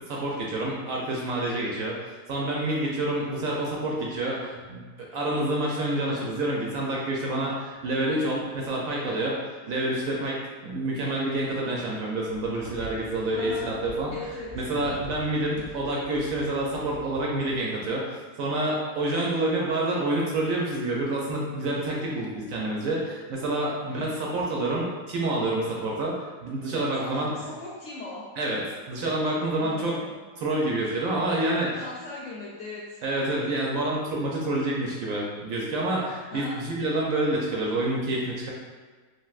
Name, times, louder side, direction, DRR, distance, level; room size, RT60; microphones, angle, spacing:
voice 1, 0.1-9.4 9.7-14.1 14.5-27.3 28.4-30.0 30.4-31.8 33.0-38.5, right 1 dB, 70° right, -3 dB, 0.9 m, -28 dB
sound 1, 12.3-17.6, right 2 dB, 85° left, 0.5 m, -44 dB
voice 2, 13.3-13.7 14.1-14.5 23.9-24.2 27.0-28.3 29.6-30.1 31.7-33.0 36.3-36.6, left 2 dB, 65° left, -5 dB, 0.8 m, -39 dB
3.3 x 2.5 x 2.3 m, 1.4 s
omnidirectional pair, 1.7 m